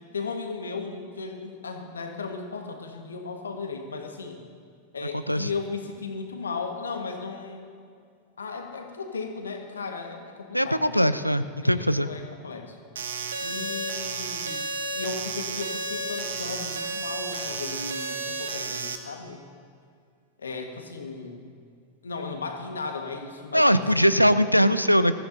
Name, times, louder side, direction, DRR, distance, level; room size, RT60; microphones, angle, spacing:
voice 1, 0.1-4.4 4.9-7.6 8.4-12.8 13.4-19.4 20.4-21.4 22.0-24.2, left 4 dB, 70° left, 4 dB, 1.6 m, -36 dB
voice 2, 5.1-5.5 10.5-12.1 23.5-25.2, equal, 90° right, 14 dB, 0.4 m, -21 dB
sound 1, 13.0-19.0, right 3 dB, 65° right, 1.0 m, -32 dB
21.0 x 14.5 x 2.8 m, 2.2 s
figure-of-eight pair, 90°, 0 cm